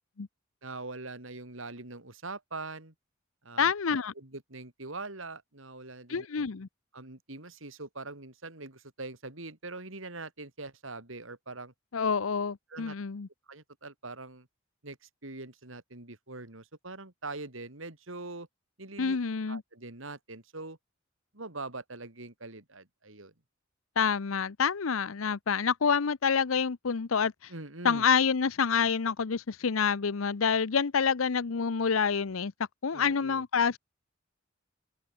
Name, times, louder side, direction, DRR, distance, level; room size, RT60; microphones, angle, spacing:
voice 1, 0.6-2.9 3.4-6.4 6.9-11.7 12.7-12.9 13.5-14.5 14.8-18.5 18.8-19.2 19.5-20.8 21.3-23.3 27.5-28.1 32.9-33.4, right 3 dB, 70° right, 3.8 m, -43 dB
voice 2, 3.6-4.1 6.1-6.7 11.9-13.3 19.0-19.6 24.0-27.5 27.8-32.5 32.8-33.8, left 6 dB, 85° left, 0.7 m, -27 dB
head